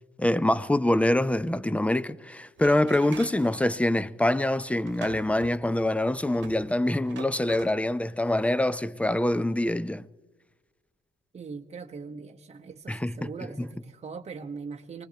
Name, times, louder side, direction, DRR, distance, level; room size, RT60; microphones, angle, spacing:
voice 1, 0.2-10.1 12.9-13.1, left 1 dB, 5° left, 0.5 m, -25 dB
sound 1, 2.6-3.5 4.8-7.8 8.5-8.6 9.3-9.6, right 8 dB, 70° right, 1.1 m, -46 dB
voice 2, 11.3-15.0, right 5 dB, 35° right, 1.0 m, -40 dB
24.5 x 20.0 x 2.9 m
cardioid pair, 90°, 20 cm